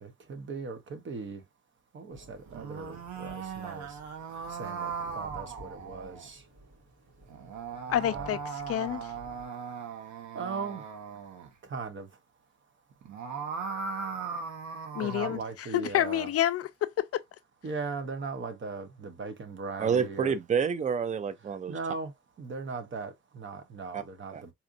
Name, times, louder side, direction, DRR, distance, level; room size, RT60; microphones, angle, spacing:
voice 1, 0.0-1.4 1.9-3.9 4.6-6.4 8.1-8.3 10.3-10.8 11.7-12.1 15.0-16.3 17.6-20.4 21.7-22.1 22.4-24.5, right 4 dB, 40° right, 0.9 m, -38 dB
sound 1, 2.1-9.5, right 1 dB, 55° right, 2.6 m, -53 dB
sound 2, 2.4-6.3 7.3-11.5 12.9-15.4, right 5 dB, 75° right, 1.0 m, -38 dB
voice 2, 7.9-9.1 14.9-15.4 15.7-17.2, left 12 dB, 55° left, 0.4 m, -28 dB
voice 3, 19.8-21.7 23.9-24.0 24.3-24.4, right 6 dB, 25° right, 0.4 m, -28 dB
4.2 x 2.5 x 2.5 m
cardioid pair, 115°, 29 cm